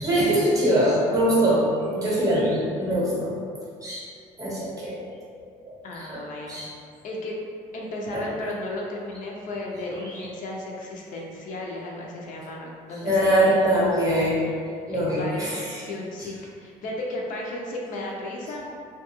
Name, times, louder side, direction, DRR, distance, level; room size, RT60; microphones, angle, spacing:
voice 1, 0.0-1.6 1.9-3.3 3.8-4.1 4.4-5.0 5.6-6.2 6.5-6.7 8.1-8.2 13.0-14.4 14.9-15.8, right 1 dB, 20° right, -6 dB, 0.8 m, -23 dB
voice 2, 5.8-6.6 7.0-7.4 7.7-13.7 14.9-18.7, left 1 dB, 60° left, -2 dB, 0.4 m, -34 dB
2.5 x 2.2 x 2.9 m, 2.3 s
cardioid pair, 135°, 15 cm